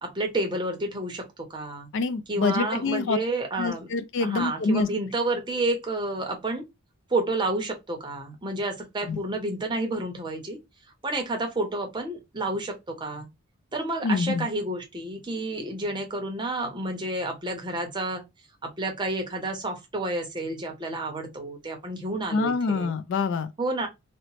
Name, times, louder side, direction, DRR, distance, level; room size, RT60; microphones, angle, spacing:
voice 1, 0.0-1.9 2.3-3.9 4.2-6.6 7.1-10.6 11.0-13.3 13.7-18.2 18.6-22.9 23.6-23.9, right 2 dB, 20° right, 0.6 m, -30 dB
voice 2, 1.9-3.2 3.6-4.9 9.1-9.2 14.0-14.5 22.3-23.5, left 4 dB, 55° left, 0.3 m, -26 dB
2.8 x 2.0 x 2.9 m
head